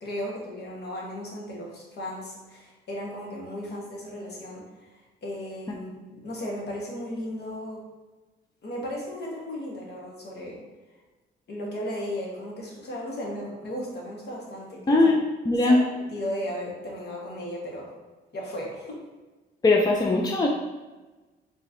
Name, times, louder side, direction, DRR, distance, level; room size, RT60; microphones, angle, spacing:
voice 1, 0.0-4.6 5.2-7.8 8.6-10.6 11.5-15.0 15.6-15.7 16.1-17.9 18.3-18.9, equal, 55° left, -3 dB, 1.3 m, -35 dB
voice 2, 14.9-15.8 19.6-20.5, left 2 dB, 20° left, 0 dB, 0.5 m, -20 dB
4.5 x 3.2 x 2.7 m, 1.2 s
cardioid pair, 90°, 20 cm